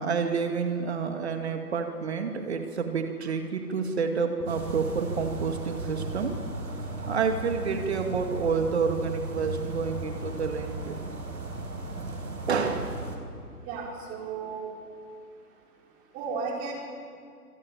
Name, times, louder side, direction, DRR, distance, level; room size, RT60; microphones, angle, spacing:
voice 1, 0.0-6.3 6.6-6.7 7.1-11.0 12.5-13.0, right 5 dB, 45° right, 5 dB, 2.2 m, -29 dB
sound 1, 4.5-13.2, right 2 dB, 70° right, 5.1 m, -36 dB
voice 2, 13.6-14.7 16.1-16.7, right 5 dB, 20° right, 0 dB, 4.7 m, -34 dB
26.0 x 23.5 x 8.9 m, 2.3 s
figure-of-eight pair, 135°, 46 cm